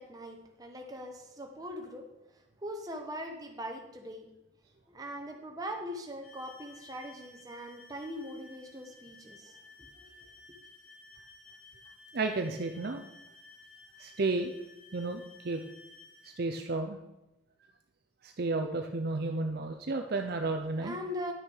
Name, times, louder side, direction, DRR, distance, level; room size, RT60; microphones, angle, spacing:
voice 1, 0.0-2.1 2.3-4.3 4.9-10.0 20.7-21.3, equal, 20° right, 2 dB, 1.2 m, -41 dB
sound 1, 6.2-16.4, left 3 dB, 80° left, 3.0 m, -55 dB
voice 2, 12.1-13.0 14.0-14.5 14.9-15.6 16.4-17.0 18.2-21.0, right 3 dB, 50° right, 5 dB, 0.6 m, -32 dB
10.5 x 6.3 x 4.7 m, 0.96 s
head